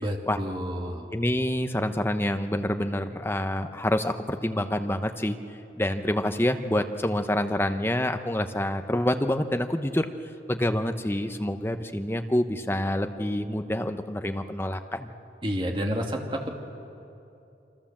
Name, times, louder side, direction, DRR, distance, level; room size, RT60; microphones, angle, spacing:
voice 1, 0.0-1.2 15.4-16.5, equal, 30° right, 1 dB, 2.4 m, -30 dB
voice 2, 1.1-5.4 5.8-10.1 10.5-15.1, left 1 dB, 15° left, 7 dB, 0.9 m, -27 dB
28.0 x 25.0 x 7.5 m, 2.7 s
head